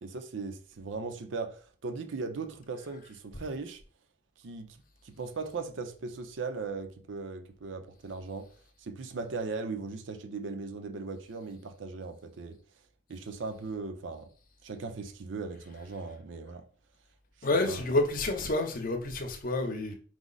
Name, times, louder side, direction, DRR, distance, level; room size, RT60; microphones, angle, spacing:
voice 1, 0.0-3.8 4.4-4.8 5.0-8.5 8.8-12.6 13.1-14.3 14.6-16.6 17.7-17.8, right 4 dB, 70° right, 0.5 m, -38 dB
voice 2, 17.4-19.9, left 2 dB, 45° left, 0.7 m, -29 dB
4.8 x 2.0 x 3.9 m
head